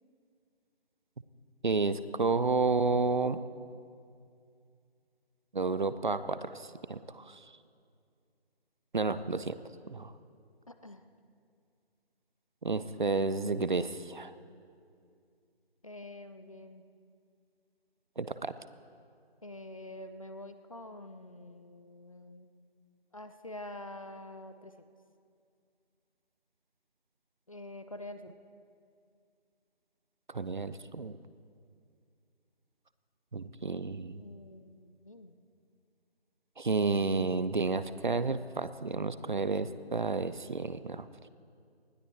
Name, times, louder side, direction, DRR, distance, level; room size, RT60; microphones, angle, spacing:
voice 1, 1.6-3.4 5.5-7.5 8.9-9.6 9.9-10.1 12.6-14.3 18.2-18.5 30.3-31.2 33.3-34.2 36.6-41.1, right 3 dB, 50° right, 14 dB, 0.6 m, -31 dB
voice 2, 10.7-11.0 12.8-13.0 15.8-16.8 19.4-22.5 23.1-24.7 27.5-28.3 34.2-35.4, left 1 dB, 35° left, 9 dB, 0.6 m, -46 dB
20.0 x 15.0 x 4.5 m, 2.3 s
figure-of-eight pair, 160°, 32 cm